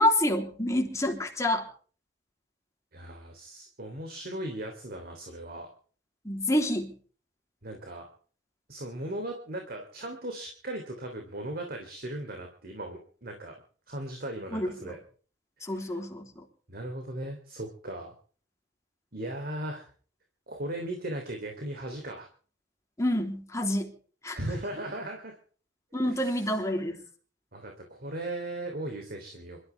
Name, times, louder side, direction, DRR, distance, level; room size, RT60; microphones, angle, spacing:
voice 1, 0.0-1.7 6.2-6.9 14.5-14.9 15.6-16.4 23.0-23.9 24.2-24.4 25.9-27.0, left 1 dB, 15° left, 2 dB, 3.3 m, -28 dB
voice 2, 2.9-5.7 7.6-8.1 8.7-13.5 13.9-15.0 15.6-16.0 16.7-18.1 19.1-19.9 20.5-22.3 24.3-25.3 26.1-27.1 27.5-29.6, right 1 dB, 50° right, 3 dB, 3.2 m, -38 dB
27.0 x 13.5 x 3.5 m, 0.42 s
head